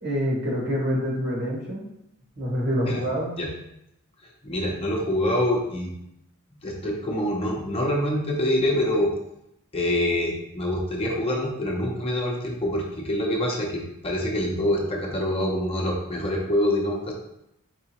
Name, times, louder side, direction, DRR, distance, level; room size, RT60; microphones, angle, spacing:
voice 1, 0.0-1.8 2.4-3.3, equal, 55° right, -3 dB, 1.4 m, -26 dB
voice 2, 4.4-5.9 6.6-9.1 9.7-17.1, left 1 dB, 25° left, -1 dB, 0.7 m, -25 dB
4.8 x 3.3 x 2.9 m, 0.80 s
head